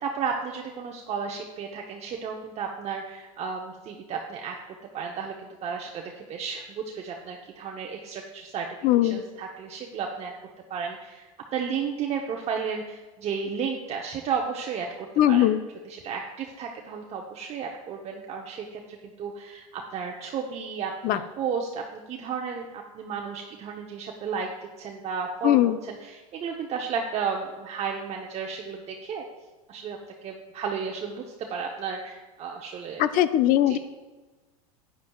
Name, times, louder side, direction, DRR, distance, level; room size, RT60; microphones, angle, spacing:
voice 1, 0.0-5.3 5.6-8.7 9.0-10.3 10.7-15.6 15.8-29.3 29.7-30.0 30.2-31.2 31.5-33.1 33.6-33.8, right 6 dB, 35° right, 1 dB, 0.9 m, -33 dB
voice 2, 8.8-9.2 15.2-15.6 21.0-21.2 25.4-25.8 33.0-33.8, left 12 dB, 50° left, 13 dB, 0.6 m, -20 dB
11.5 x 9.5 x 2.3 m, 1.2 s
hypercardioid pair, 100°, 18 cm